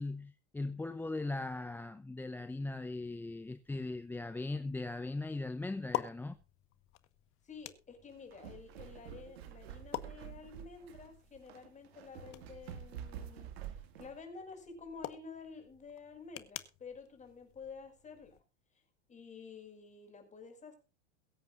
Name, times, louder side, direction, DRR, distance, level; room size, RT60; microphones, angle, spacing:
voice 1, 0.0-6.4, left 2 dB, 5° left, 0.7 m, -39 dB
sound 1, 3.2-18.4, left 16 dB, 40° left, 1.4 m, -48 dB
voice 2, 7.4-13.5 14.0-18.4 19.1-20.7, left 5 dB, 20° left, 5.7 m, -50 dB
sound 2, 8.1-14.2, right 9 dB, 65° right, 2.2 m, -48 dB
22.5 x 8.7 x 2.5 m
hypercardioid pair, 105°, 33 cm